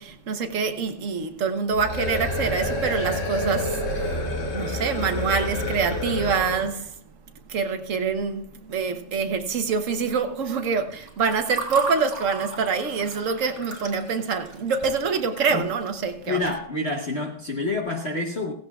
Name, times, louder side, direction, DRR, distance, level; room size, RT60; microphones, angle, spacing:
voice 1, 0.0-4.2 4.5-6.9 7.5-16.4, right 5 dB, 50° right, 1.1 m, -26 dB
sound 1, 1.7-6.7, left 1 dB, 70° left, 2.6 m, -28 dB
Water / Fill (with liquid), 10.9-16.0, right 3 dB, 20° right, 2.7 m, -36 dB
voice 2, 16.3-18.5, left 2 dB, 40° left, 1.1 m, -28 dB
16.0 x 16.0 x 2.3 m
omnidirectional pair, 2.0 m